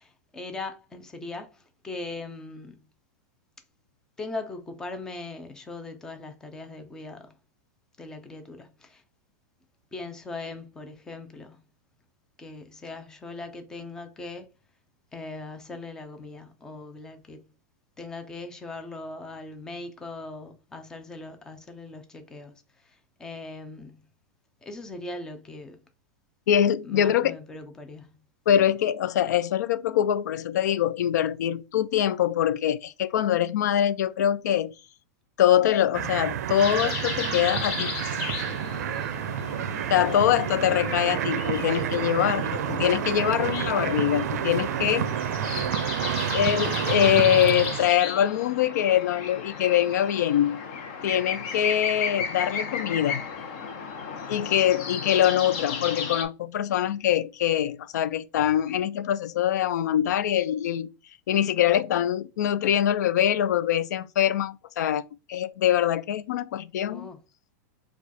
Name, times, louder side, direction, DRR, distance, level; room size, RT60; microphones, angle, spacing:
voice 1, 0.0-2.9 4.2-7.4 8.0-9.0 9.9-11.6 12.4-14.5 15.1-17.5 18.0-24.1 24.6-25.8 26.8-28.2 39.8-39.9 66.9-67.2, left 2 dB, 5° left, 0.5 m, -40 dB
voice 2, 26.5-27.4 28.5-34.7 35.4-37.9 39.9-45.1 46.3-50.6 51.0-53.2 54.3-60.9 61.3-67.1, left 10 dB, 85° left, 0.4 m, -24 dB
sound 1, 35.9-47.9, right 10 dB, 70° right, 0.4 m, -29 dB
sound 2, 36.6-56.2, left 5 dB, 40° left, 0.8 m, -35 dB
4.7 x 2.3 x 4.1 m
supercardioid pair, 170°, 9 cm